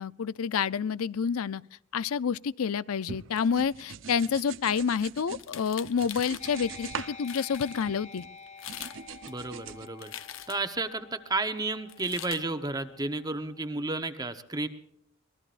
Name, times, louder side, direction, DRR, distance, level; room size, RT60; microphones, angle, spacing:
voice 1, 0.0-1.6 1.9-8.2, left 6 dB, 85° left, 0.5 m, -28 dB
sound 1, 3.1-5.5 5.8-7.2 7.4-8.3 8.7-9.9, right 6 dB, 60° right, 0.7 m, -42 dB
sound 2, 5.3-6.5 7.0-7.1 7.2-7.7 8.5-9.0 9.3-10.8 11.9-12.4, left 11 dB, 65° left, 0.8 m, -42 dB
sound 3, 6.4-13.5, left 4 dB, 35° left, 1.0 m, -49 dB
voice 2, 9.3-10.1 10.5-14.7, right 2 dB, 20° right, 0.9 m, -32 dB
25.5 x 20.0 x 2.5 m
head